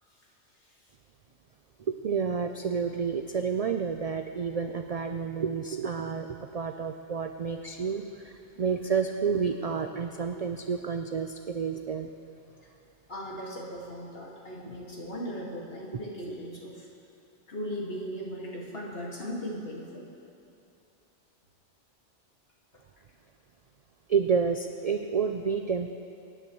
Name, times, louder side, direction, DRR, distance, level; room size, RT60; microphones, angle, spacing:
voice 1, 1.9-12.1 14.6-14.7 15.9-16.0 24.1-25.9, right 6 dB, 60° right, 6 dB, 0.4 m, -30 dB
voice 2, 13.1-16.9 17.5-20.0, equal, 55° left, -4 dB, 2.3 m, -37 dB
23.5 x 10.0 x 3.1 m, 2.6 s
omnidirectional pair, 1.2 m